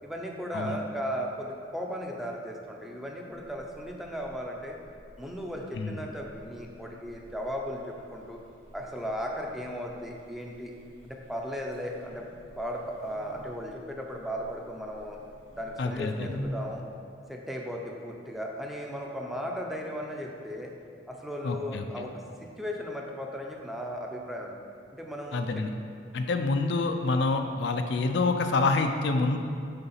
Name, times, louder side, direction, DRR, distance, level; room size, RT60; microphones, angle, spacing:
voice 1, 0.0-4.8 5.2-8.4 8.7-10.7 11.0-15.2 15.5-16.8 17.3-20.7 21.1-24.6 24.9-25.6, equal, ahead, 0 dB, 0.6 m, -36 dB
Buzz, 3.3-16.5, equal, 85° right, 1.7 m, -50 dB
voice 2, 15.8-16.4 21.4-22.1 25.3-25.7 26.1-29.4, left 3 dB, 60° left, 5 dB, 0.5 m, -27 dB
6.7 x 4.8 x 5.6 m, 2.4 s
head